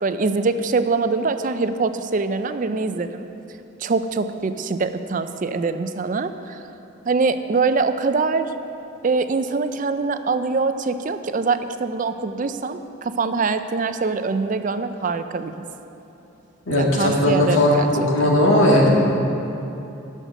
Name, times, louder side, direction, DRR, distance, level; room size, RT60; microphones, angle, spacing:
voice 1, 0.0-3.3 3.8-6.6 7.1-8.5 9.0-15.7 16.8-17.9 18.2-18.4, right 4 dB, 40° right, 10 dB, 0.4 m, -23 dB
voice 2, 16.7-18.9, left 1 dB, 70° left, -3 dB, 1.9 m, -17 dB
11.0 x 6.5 x 6.5 m, 2.9 s
head